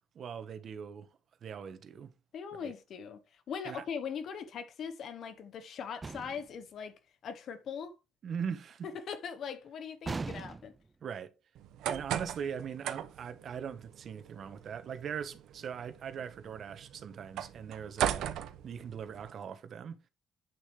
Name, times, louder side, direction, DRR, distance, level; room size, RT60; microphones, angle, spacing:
voice 1, 0.1-1.1 1.4-2.1 2.5-2.7 3.6-3.8 8.2-8.9 11.0-11.3 11.9-18.3 18.6-20.0, right 7 dB, 60° right, 1.5 m, -40 dB
voice 2, 2.3-8.0 8.8-10.7, left 7 dB, 65° left, 1.3 m, -41 dB
sound 1, 6.0-6.6 10.0-10.9, right 4 dB, 30° right, 0.3 m, -39 dB
sound 2, 11.5-19.3, right 11 dB, 85° right, 0.9 m, -39 dB
8.9 x 6.8 x 3.4 m
cardioid pair, 90°, 0 cm